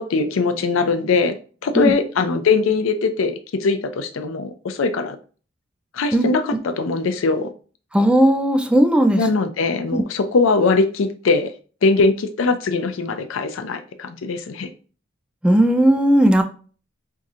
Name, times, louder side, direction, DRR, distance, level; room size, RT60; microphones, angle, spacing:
voice 1, 0.0-1.3 1.6-5.2 5.9-7.5 9.1-11.5 11.8-14.7, left 4 dB, 85° left, 0.5 m, -21 dB
voice 2, 7.9-9.2 9.9-10.0 15.4-16.4, right 1 dB, 5° right, 0.3 m, -16 dB
4.6 x 2.7 x 2.5 m
head